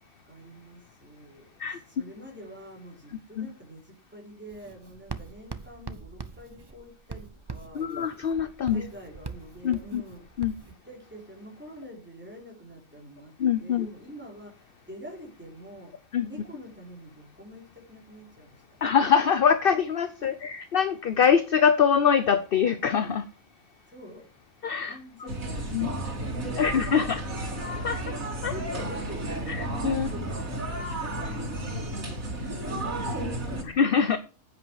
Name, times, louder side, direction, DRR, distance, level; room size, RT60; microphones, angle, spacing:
voice 1, 0.2-7.9 8.7-10.2 10.8-13.3 13.6-15.9 16.2-18.8 20.2-20.3 23.9-24.3 24.5-26.7 26.9-27.1 28.0-33.6, equal, 10° right, 4.4 m, -46 dB
Writing, 4.5-10.7, right 4 dB, 30° right, 0.5 m, -42 dB
voice 2, 7.7-8.8 9.6-10.0 10.4-10.5 13.4-13.9 16.1-16.3 18.8-23.3 24.6-25.3 25.7-25.9 26.5-27.2 27.8-28.0 28.4-28.5 29.5-30.1 33.6-34.2, left 7 dB, 50° left, 0.9 m, -24 dB
sound 1, 25.3-33.6, right 1 dB, 80° right, 3.0 m, -32 dB
10.0 x 8.5 x 4.8 m
omnidirectional pair, 1.4 m